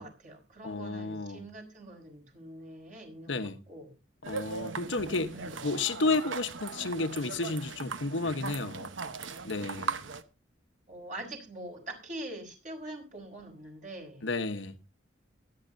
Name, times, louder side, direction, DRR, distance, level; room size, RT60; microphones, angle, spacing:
voice 1, 0.0-3.9 5.3-5.6 9.8-10.2 10.9-14.2, right 1 dB, 40° right, 4.9 m, -44 dB
voice 2, 0.6-1.4 3.3-3.6 4.3-5.4 5.6-8.9 9.4-10.0 14.2-14.8, left 3 dB, 75° left, 1.1 m, -32 dB
sound 1, 4.2-10.2, right 4 dB, 80° right, 1.0 m, -39 dB
23.5 x 9.7 x 2.7 m
head